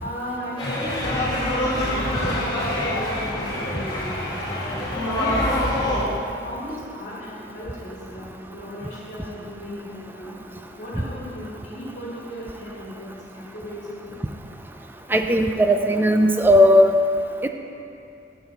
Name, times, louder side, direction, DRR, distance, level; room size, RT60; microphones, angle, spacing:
voice 1, 0.0-6.1 6.4-10.4 10.8-14.1, equal, 55° left, -9 dB, 2.1 m, -36 dB
sound 1, 0.6-6.0, left 1 dB, 20° left, 1.8 m, -25 dB
voice 2, 15.1-16.9 17.4-17.5, equal, 10° right, 5 dB, 0.3 m, -16 dB
8.2 x 6.8 x 4.0 m, 2.7 s
head